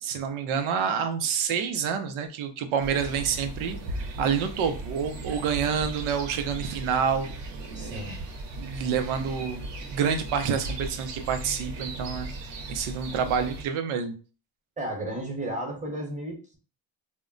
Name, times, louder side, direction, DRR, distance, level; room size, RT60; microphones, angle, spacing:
voice 1, 0.0-3.8 4.2-7.3 7.7-8.0 8.6-9.6 9.9-12.3 12.7-14.1, right 7 dB, 90° right, 7 dB, 0.6 m, -28 dB
sound 1, 2.8-13.6, right 2 dB, 60° right, 0.9 m, -37 dB
voice 2, 7.7-8.2 14.8-16.6, right 1 dB, 15° right, 1 dB, 1.0 m, -33 dB
2.1 x 2.1 x 3.7 m, 0.37 s
cardioid pair, 95°, 47 cm